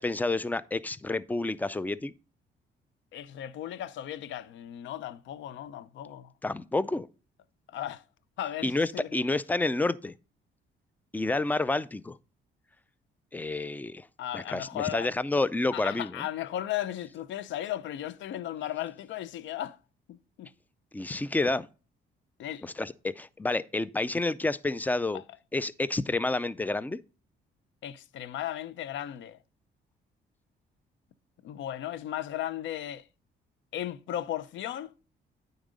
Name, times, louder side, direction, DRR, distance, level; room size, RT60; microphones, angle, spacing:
voice 1, 0.0-2.1 6.4-7.1 8.6-10.1 11.1-12.2 13.3-14.1 14.3-16.3 20.9-21.7 22.6-25.2 25.5-27.0, left 2 dB, 10° left, 0.4 m, -29 dB
voice 2, 3.1-6.3 7.7-8.0 8.4-9.1 14.2-15.1 15.7-19.8 20.1-20.5 22.4-22.7 25.1-25.2 27.8-29.4 31.4-33.0 33.7-34.9, left 12 dB, 70° left, 0.5 m, -36 dB
9.1 x 4.0 x 5.1 m
cardioid pair, 90°, 20 cm